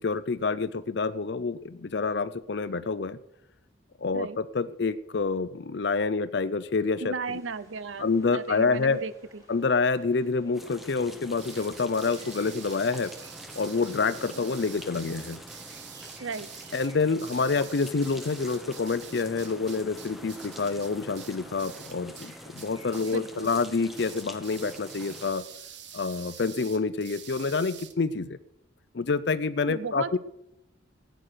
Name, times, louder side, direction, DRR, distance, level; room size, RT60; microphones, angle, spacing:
voice 1, 0.0-3.2 4.0-7.4 8.0-9.0 9.5-13.1 13.6-15.4 16.7-25.4 25.9-28.4 28.9-30.2, left 4 dB, 60° left, 13 dB, 0.5 m, -27 dB
voice 2, 7.0-9.4 16.2-16.5 23.1-23.5 29.7-30.2, right 4 dB, 85° right, 16 dB, 0.7 m, -35 dB
sound 1, 7.2-25.5, equal, 15° right, 4.5 m, -58 dB
sound 2, 10.5-25.3, equal, ahead, 1.1 m, -46 dB
sound 3, 11.4-22.3 22.6-23.2 23.4-23.7 24.0-27.9, right 9 dB, 65° right, 1.2 m, -47 dB
14.0 x 9.2 x 6.6 m, 0.83 s
head